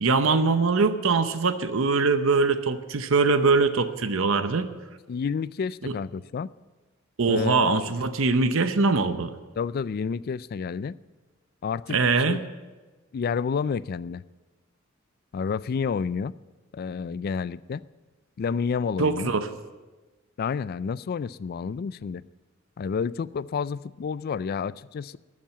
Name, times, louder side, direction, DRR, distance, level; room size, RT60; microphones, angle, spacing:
voice 1, 0.0-4.7 5.8-5.9 7.2-9.3 11.9-12.4 19.0-19.5, right 4 dB, 70° right, 10 dB, 0.7 m, -22 dB
voice 2, 5.1-6.5 7.3-7.9 9.5-11.0 11.6-12.0 12.3-12.4 13.1-14.2 15.3-16.3 16.7-17.8 18.4-19.3 20.4-22.2 22.8-25.2, left 6 dB, 45° left, 18 dB, 0.3 m, -29 dB
12.5 x 7.4 x 8.8 m, 1.2 s
head